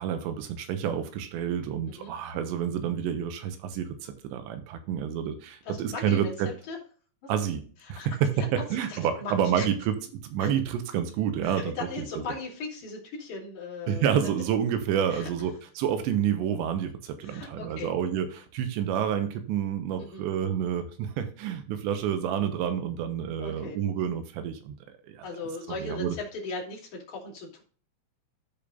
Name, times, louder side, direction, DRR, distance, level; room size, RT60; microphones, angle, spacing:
voice 1, 0.0-6.5 7.3-7.6 7.9-10.0 10.2-12.1 13.9-24.8 25.0-25.3 25.8-26.2, right 9 dB, 85° right, 7 dB, 3.3 m, -29 dB
voice 2, 5.7-6.3 6.7-6.8 8.0-8.1 8.6-9.7 10.4-10.5 11.4-14.1 15.1-15.3 17.2-17.9 20.0-20.3 23.4-23.8 25.2-27.6, left 3 dB, 45° left, -3 dB, 3.8 m, -38 dB
14.0 x 5.1 x 2.5 m, 0.42 s
omnidirectional pair, 5.1 m